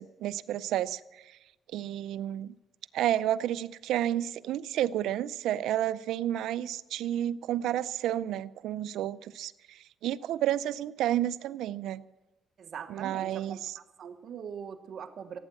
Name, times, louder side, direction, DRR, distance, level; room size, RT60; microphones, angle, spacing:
voice 1, 0.0-1.4 1.7-2.5 2.9-12.0 12.9-13.7, right 12 dB, 85° right, 18 dB, 0.4 m, -31 dB
voice 2, 12.6-13.6 14.0-15.4, right 7 dB, 60° right, 9 dB, 1.2 m, -41 dB
16.0 x 9.0 x 7.7 m, 1.0 s
cardioid pair, 90°, 0 cm